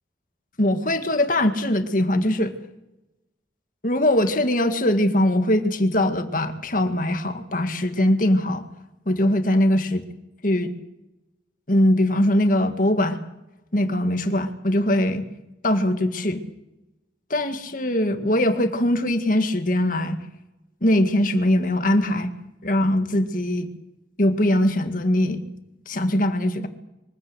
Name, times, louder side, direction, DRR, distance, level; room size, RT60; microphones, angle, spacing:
voice 1, 0.6-2.5 3.8-8.6 9.1-10.0 10.4-10.7 11.7-13.2 13.7-15.3 15.6-16.4 17.3-20.2 20.8-22.3 22.6-23.7 24.2-25.5 25.9-26.7, left 1 dB, 50° left, 8 dB, 2.0 m, -21 dB
23.5 x 16.5 x 8.1 m, 0.95 s
head